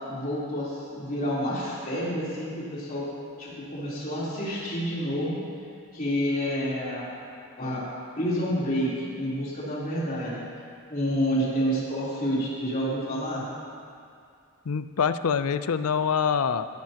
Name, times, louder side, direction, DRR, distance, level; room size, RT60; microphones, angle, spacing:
voice 1, 0.1-3.1 3.4-5.4 5.9-7.1 7.6-7.8 8.2-10.4 10.9-13.4, equal, 40° left, -8 dB, 3.6 m, -29 dB
voice 2, 14.7-16.7, left 6 dB, 90° left, 12 dB, 0.5 m, -25 dB
15.5 x 15.0 x 2.9 m, 2.4 s
head